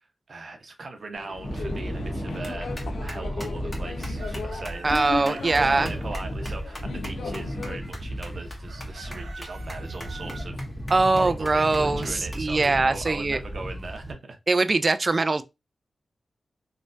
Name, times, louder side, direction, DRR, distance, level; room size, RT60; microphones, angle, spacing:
voice 1, 0.0-10.6 11.0-14.4, right 3 dB, 55° right, 0.8 m, -39 dB
sound 1, 1.1-7.8, left 4 dB, 85° left, 0.3 m, -37 dB
sound 2, 1.4-14.1, equal, 25° left, 1.0 m, -34 dB
Chicken rooster, 4.2-6.0 8.7-10.5, right 4 dB, 85° right, 0.7 m, -44 dB
voice 2, 4.8-5.9 10.9-13.4 14.5-15.4, right 3 dB, 35° right, 0.4 m, -22 dB
3.2 x 3.2 x 2.6 m
wide cardioid pair, 110°, 0 cm